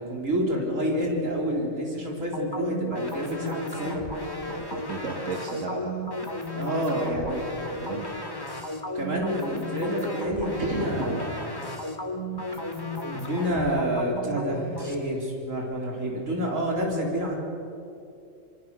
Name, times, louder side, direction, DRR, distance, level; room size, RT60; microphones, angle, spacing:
voice 1, 0.0-4.0 6.6-7.4 8.9-11.8 13.1-17.3, right 1 dB, 85° right, -1 dB, 4.5 m, -28 dB
sound 1, 2.3-14.9, left 1 dB, 15° left, 2.3 m, -34 dB
voice 2, 4.4-6.0 6.6-7.1 7.7-8.5 10.6-11.2 14.7-14.8, right 2 dB, 65° right, 0 dB, 2.6 m, -35 dB
26.0 x 23.5 x 6.7 m, 2.7 s
omnidirectional pair, 1.3 m